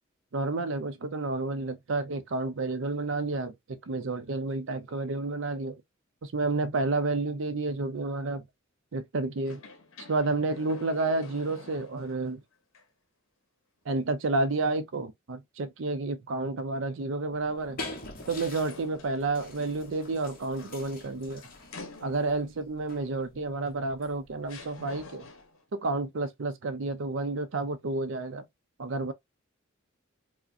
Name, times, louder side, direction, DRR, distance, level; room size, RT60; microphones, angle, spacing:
voice 1, 0.3-5.8 6.2-8.4 8.9-9.6 10.1-12.4 13.9-17.8 18.3-21.4 22.0-25.3 25.7-28.4 28.8-29.1, right 3 dB, 70° right, 0.5 m, -30 dB
sound 1, 9.4-12.3 12.7-12.8 18.2-22.5 23.7-23.8 24.5-25.6, left 3 dB, 80° left, 0.9 m, -48 dB
sound 2, 17.3-25.4, left 2 dB, 45° left, 1.0 m, -46 dB
4.9 x 2.1 x 2.6 m
head